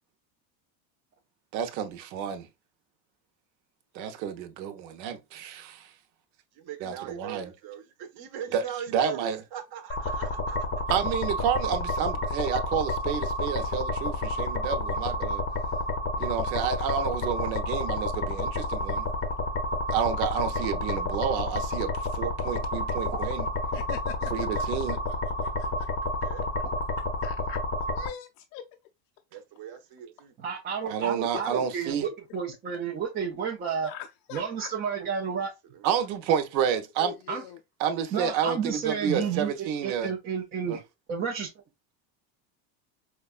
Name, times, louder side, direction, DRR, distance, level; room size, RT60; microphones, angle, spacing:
voice 1, 1.5-2.5 3.9-5.9 6.8-7.5 8.5-8.6 8.9-9.4 10.9-15.4 16.2-19.1 19.9-23.5 24.3-25.0 30.9-32.0 35.8-37.1 37.8-40.1 40.7-40.8, right 8 dB, 85° right, 0.9 m, -30 dB
voice 2, 6.5-10.9 26.2-26.5 29.3-30.3 35.3-35.4 35.7-35.9, right 9 dB, 50° right, 0.8 m, -40 dB
sound 1, 9.9-28.1, left 1 dB, 25° left, 0.6 m, -30 dB
voice 3, 23.7-25.9 27.2-27.6 27.9-28.6 31.2-31.4 33.7-34.7 37.0-37.6 38.8-39.4, left 11 dB, 70° left, 0.6 m, -43 dB
voice 4, 30.4-33.9 34.3-35.5 37.3-37.4 38.1-40.8 41.1-41.5, right 6 dB, 20° right, 0.3 m, -31 dB
4.7 x 2.2 x 2.3 m
supercardioid pair, 125°, 50 cm